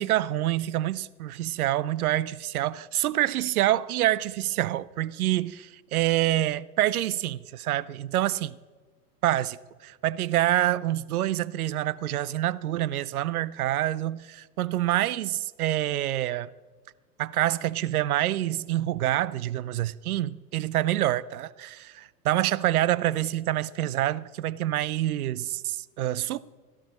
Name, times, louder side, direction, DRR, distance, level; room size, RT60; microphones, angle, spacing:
voice 1, 0.0-8.6 9.2-16.5 17.2-21.9 22.3-26.4, right 14 dB, 65° right, 0.6 m, -27 dB
13.0 x 12.5 x 4.1 m
figure-of-eight pair, 95°, 49 cm